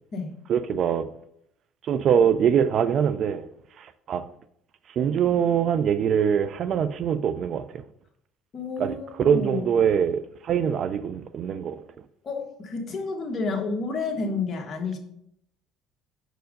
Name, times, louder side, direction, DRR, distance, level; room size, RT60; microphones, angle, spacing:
voice 1, 0.5-1.1 1.9-3.5 3.8-4.2 5.0-7.6 8.8-8.9 9.2-11.8, right 8 dB, 50° right, 0.4 m, -23 dB
voice 2, 8.5-9.7 12.2-15.0, left 3 dB, 40° left, 1.6 m, -30 dB
6.2 x 4.7 x 6.4 m
cardioid pair, 115°, 0 cm